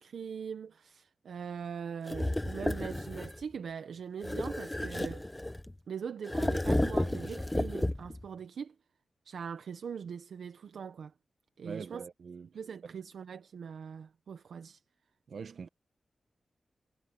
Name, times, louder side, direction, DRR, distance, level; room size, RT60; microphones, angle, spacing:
voice 1, 0.0-5.3 5.9-8.7 9.2-11.1 11.6-12.0 12.5-14.8, right 7 dB, 85° right, 0.9 m, -41 dB
sound 1, 2.1-3.4 4.2-5.7 6.2-8.2, left 1 dB, 10° left, 0.8 m, -32 dB
voice 2, 11.6-13.0 15.3-15.7, right 6 dB, 70° right, 1.3 m, -44 dB
wide cardioid pair, 105°, 0 cm